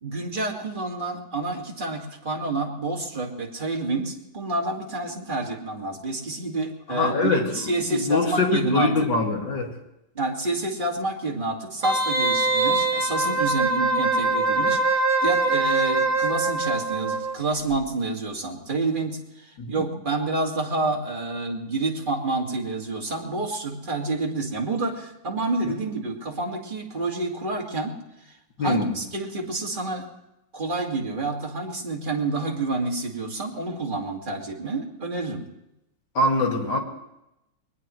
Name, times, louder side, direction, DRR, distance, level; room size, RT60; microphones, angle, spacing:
voice 1, 0.0-8.9 10.1-28.0 28.6-30.0 30.5-35.4, right 2 dB, 25° right, -1 dB, 2.2 m, -28 dB
voice 2, 6.9-9.8 19.6-19.7 25.6-25.8 28.6-28.9 36.1-36.8, left 2 dB, 65° left, 1 dB, 2.7 m, -24 dB
Wind instrument woodwind instrument, 11.8-17.4 17.7-17.8, right 2 dB, 55° right, 1.7 m, -23 dB
22.0 x 19.5 x 3.2 m, 0.88 s
omnidirectional pair, 2.1 m